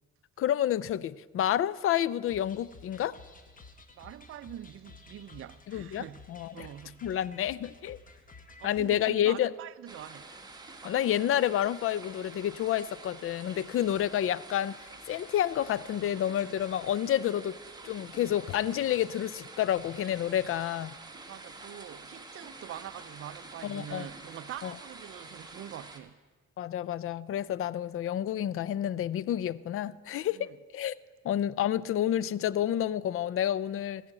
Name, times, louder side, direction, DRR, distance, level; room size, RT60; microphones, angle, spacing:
voice 1, 0.4-3.2 5.7-6.7 7.0-8.0 8.6-9.5 10.8-14.8 15.1-17.6 17.8-20.9 23.6-24.1 24.6-24.7 26.6-31.0 31.2-34.0, left 11 dB, 45° left, 0.4 m, -29 dB
sound 1, 2.3-9.1, left 3 dB, 25° left, 1.1 m, -53 dB
voice 2, 3.9-6.2 6.5-7.1 8.6-10.3 21.2-26.2 30.3-30.6, right 11 dB, 45° right, 0.4 m, -44 dB
sound 2, 9.9-26.0, right 3 dB, 15° right, 1.3 m, -48 dB
14.5 x 5.0 x 8.8 m
cardioid pair, 90°, 30 cm